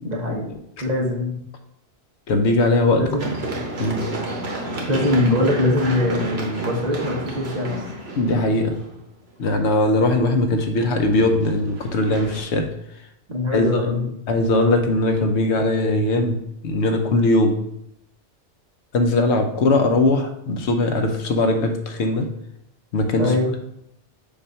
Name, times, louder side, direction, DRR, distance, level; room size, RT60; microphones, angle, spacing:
voice 1, 0.0-0.4 0.8-1.3 3.0-3.4 4.9-7.8 8.3-8.4 13.3-14.0 23.1-23.5, left 1 dB, 40° right, -1 dB, 1.1 m, -22 dB
voice 2, 2.3-3.0 3.8-4.1 8.2-8.7 9.4-12.7 13.5-16.4 16.6-17.6 18.9-22.3 22.9-23.6, left 2 dB, 75° left, 5 dB, 1.0 m, -20 dB
Run, 3.2-9.0 10.9-12.4, right 1 dB, 65° right, 1.4 m, -31 dB
7.0 x 2.6 x 5.4 m, 0.78 s
omnidirectional pair, 1.2 m